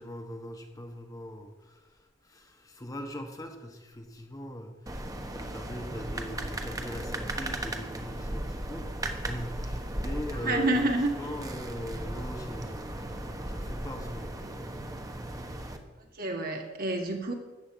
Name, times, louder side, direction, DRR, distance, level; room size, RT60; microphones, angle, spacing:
voice 1, 0.0-5.0 5.3-8.9 9.2-14.7, equal, 20° left, 4 dB, 1.1 m, -41 dB
sound 1, 4.9-15.8, right 1 dB, 20° right, 1.1 m, -36 dB
voice 2, 10.3-11.2 16.2-17.3, right 2 dB, 50° right, 3 dB, 2.0 m, -28 dB
14.0 x 5.6 x 9.1 m, 1.1 s
head